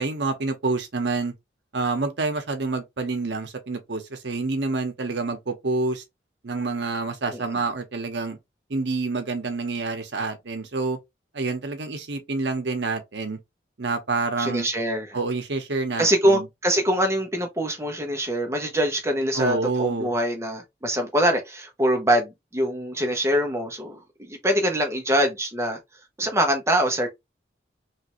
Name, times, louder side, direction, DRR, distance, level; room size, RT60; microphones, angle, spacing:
voice 1, 0.0-1.3 1.7-6.0 6.4-8.4 8.7-11.0 11.3-13.4 13.8-14.7 15.1-16.5 19.3-20.1, right 3 dB, 75° right, 0.8 m, -27 dB
voice 2, 14.4-15.2 16.0-25.8 26.2-27.1, equal, 15° right, 0.7 m, -24 dB
3.2 x 2.5 x 3.0 m
head